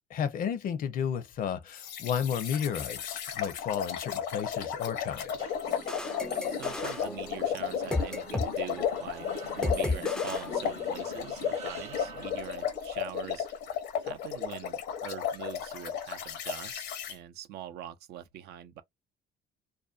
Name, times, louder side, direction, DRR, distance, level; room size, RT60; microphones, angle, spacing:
voice 1, 0.1-5.5, left 8 dB, 55° left, 0.6 m, -33 dB
sound 1, 1.7-17.1, left 8 dB, 80° left, 0.8 m, -34 dB
sound 2, 4.5-13.0, right 6 dB, 40° right, 0.9 m, -50 dB
sound 3, 5.7-8.5 8.8-9.0 9.6-11.1, left 2 dB, 5° left, 0.3 m, -35 dB
voice 2, 6.5-13.5 14.0-18.8, right 11 dB, 75° right, 0.5 m, -43 dB
2.5 x 2.1 x 2.4 m
cardioid pair, 110°, 17 cm